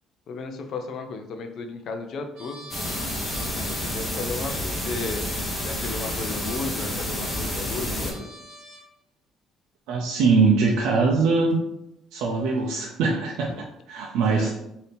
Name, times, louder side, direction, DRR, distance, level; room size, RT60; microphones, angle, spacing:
voice 1, 0.3-2.7 3.5-5.3 5.6-8.3 14.3-14.6, left 4 dB, 45° left, 6 dB, 0.5 m, -34 dB
Trumpet, 2.3-8.9, equal, 60° right, 1.3 m, -45 dB
sound 1, 2.7-8.1, left 1 dB, 10° left, 0.9 m, -29 dB
voice 2, 9.9-11.6 12.1-13.5 13.9-14.5, right 4 dB, 80° right, -1 dB, 0.5 m, -22 dB
4.2 x 2.7 x 3.3 m, 0.83 s
cardioid pair, 175°, 0 cm